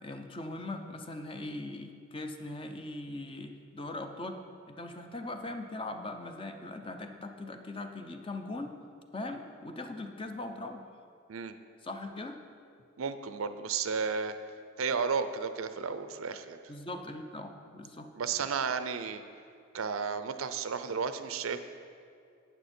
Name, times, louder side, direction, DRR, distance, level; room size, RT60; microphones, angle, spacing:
voice 1, 0.0-4.4 4.7-8.8 9.1-10.8 11.8-12.4 16.7-18.1, left 2 dB, 25° left, 5 dB, 0.7 m, -40 dB
voice 2, 13.0-14.3 14.8-16.6 18.1-19.2 19.7-21.6, right 5 dB, 80° right, 10 dB, 0.6 m, -33 dB
11.5 x 8.8 x 4.4 m, 2.4 s
head